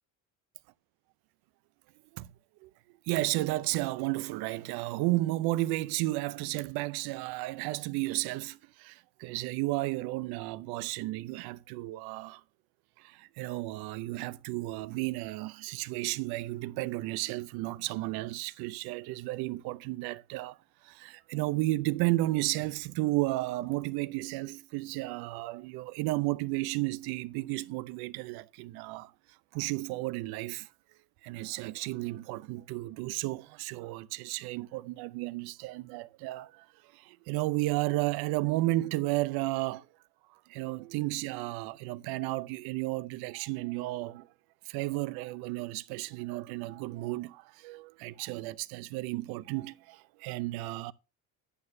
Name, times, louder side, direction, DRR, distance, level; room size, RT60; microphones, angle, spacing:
voice 1, 3.1-12.4 13.0-20.6 20.8-29.1 29.5-30.7 31.2-36.7 36.9-39.9 40.5-44.3 44.7-50.9, right 19 dB, 80° right, 0.7 m, -33 dB
11.0 x 8.8 x 2.7 m
cardioid pair, 105°, 37 cm